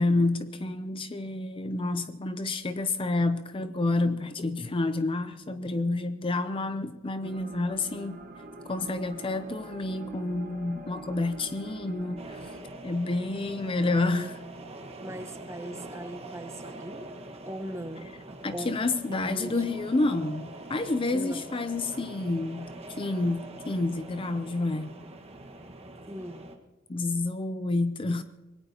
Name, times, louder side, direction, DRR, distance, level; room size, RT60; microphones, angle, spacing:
voice 1, 0.0-8.2 8.7-12.5 12.8-14.4 18.4-22.7 23.0-25.0 26.9-28.2, left 2 dB, 25° left, 0.5 m, -29 dB
sound 1, 7.2-12.6, right 3 dB, 45° right, 1.2 m, -44 dB
sound 2, 12.2-26.6, right 2 dB, 30° right, 1.5 m, -44 dB
voice 2, 13.8-14.3 15.0-17.1 17.4-18.1 18.5-18.8 19.2-19.7 21.1-21.5 26.1-26.5, equal, 15° right, 1.1 m, -39 dB
25.5 x 19.5 x 2.9 m
head